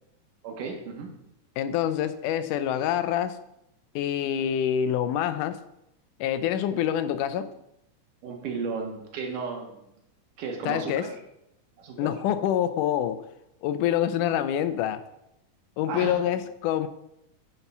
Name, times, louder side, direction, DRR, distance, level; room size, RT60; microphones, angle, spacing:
voice 1, 0.4-1.1 8.2-9.8 10.4-11.2 11.8-12.1 15.9-16.2, right 4 dB, 80° right, 2 dB, 3.1 m, -34 dB
voice 2, 1.6-3.4 4.0-5.6 6.2-7.5 10.7-11.1 12.0-13.3 13.6-15.0 15.8-16.9, left 10 dB, 85° left, 11 dB, 2.2 m, -26 dB
9.7 x 6.0 x 5.4 m, 0.81 s
omnidirectional pair, 3.6 m